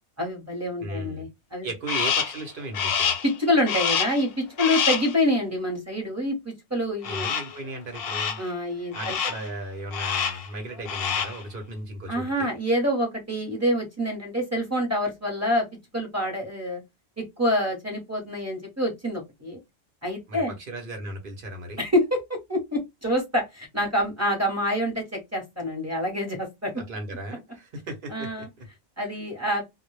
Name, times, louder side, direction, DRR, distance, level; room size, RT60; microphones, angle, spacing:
voice 1, 0.2-1.7 3.2-7.3 8.4-9.2 12.1-15.7 15.9-16.8 17.2-19.6 20.0-20.5 21.8-22.2 22.5-26.7 28.1-28.5 29.0-29.6, equal, 15° right, 0.8 m, -26 dB
voice 2, 0.8-1.3 1.6-3.1 7.0-8.4 8.9-12.5 20.3-21.8 26.9-28.7, right 1 dB, 55° right, 0.9 m, -36 dB
Crow, 1.9-2.4 2.7-3.3 3.7-4.2 4.6-5.1 7.0-7.6 7.9-8.5 8.9-9.5 9.9-10.5 10.8-11.4, left 7 dB, 65° left, 0.7 m, -27 dB
2.1 x 2.1 x 3.0 m
omnidirectional pair, 1.1 m